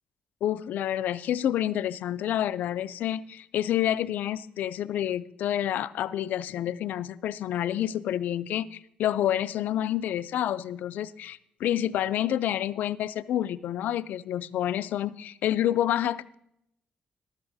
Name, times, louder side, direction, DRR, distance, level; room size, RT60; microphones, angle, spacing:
voice 1, 0.4-16.3, left 11 dB, 85° left, 15 dB, 0.4 m, -28 dB
13.5 x 12.5 x 2.6 m, 0.76 s
wide cardioid pair, 160°, 3 cm